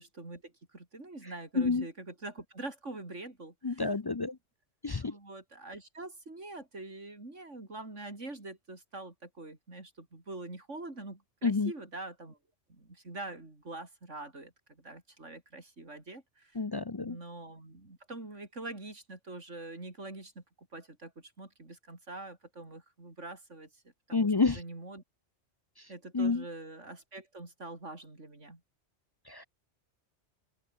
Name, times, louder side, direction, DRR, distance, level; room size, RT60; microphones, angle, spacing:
voice 1, 0.0-3.9 5.1-12.4 12.7-16.6 17.0-23.8 24.1-25.0 25.9-28.6, right 2 dB, 80° right, 5.3 m, -45 dB
voice 2, 1.6-1.9 3.6-4.4 4.8-5.1 11.4-11.7 16.6-17.2 24.1-24.6 25.8-25.9 26.1-26.4 29.3-29.5, left 4 dB, 35° left, 0.4 m, -29 dB
open air
omnidirectional pair, 1.2 m